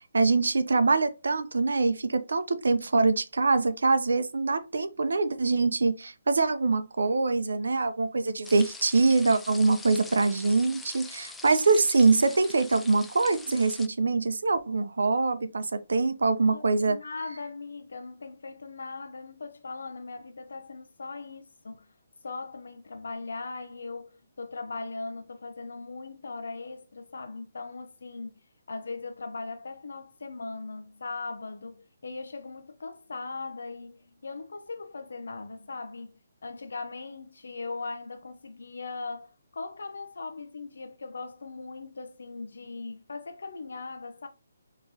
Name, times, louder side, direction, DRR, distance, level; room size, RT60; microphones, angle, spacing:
voice 1, 0.0-17.0, right 3 dB, 80° right, 0.6 m, -24 dB
sound 1, 8.4-13.9, left 3 dB, 5° left, 0.4 m, -44 dB
voice 2, 16.4-21.9 22.2-28.4 28.7-44.3, left 3 dB, 75° left, 0.5 m, -39 dB
4.5 x 3.0 x 2.8 m
hypercardioid pair, 150°, 0 cm